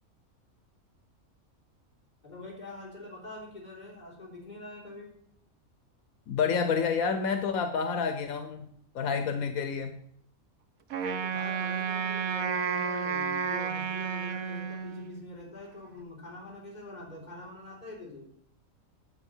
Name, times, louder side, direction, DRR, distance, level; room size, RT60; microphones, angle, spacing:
voice 1, 2.2-5.1 11.1-18.3, left 2 dB, 30° left, -4 dB, 4.1 m, -44 dB
voice 2, 6.3-8.7 8.9-10.0, left 6 dB, 85° left, 8 dB, 1.3 m, -29 dB
Wind instrument woodwind instrument, 10.9-15.3, right 6 dB, 90° right, 1.3 m, -31 dB
9.9 x 7.6 x 5.5 m, 0.68 s
omnidirectional pair, 1.4 m